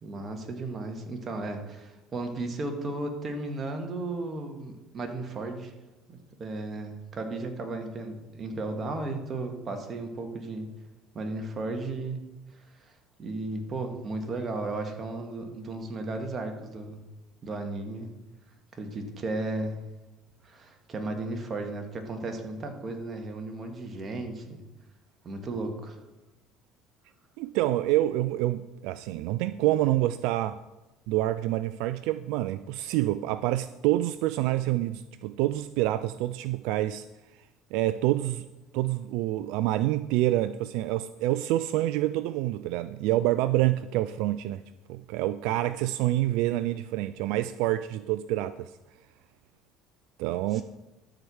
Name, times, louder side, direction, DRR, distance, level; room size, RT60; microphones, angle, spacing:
voice 1, 0.0-5.7 6.1-10.7 11.1-12.2 13.2-17.0 17.4-18.1 18.7-19.8 20.4-24.6 25.2-26.0 50.5-50.6, right 2 dB, 35° right, 4 dB, 1.9 m, -35 dB
voice 2, 27.4-30.6 31.1-37.1 37.7-38.5 38.7-44.6 44.9-48.8 50.2-50.6, right 15 dB, 75° right, 14 dB, 0.3 m, -27 dB
12.5 x 4.8 x 7.1 m, 1.0 s
supercardioid pair, 85°, 0 cm